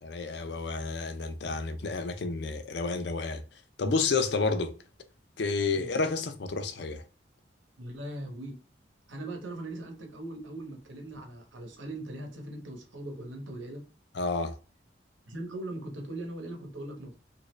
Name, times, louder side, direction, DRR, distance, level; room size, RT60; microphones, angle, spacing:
voice 1, 0.0-3.4 3.8-4.7 5.4-7.0 14.1-14.6, left 4 dB, 65° left, 0.5 m, -30 dB
voice 2, 7.8-8.6 9.1-13.8 15.3-17.2, right 1 dB, 85° right, 1.0 m, -40 dB
3.0 x 2.5 x 3.0 m
head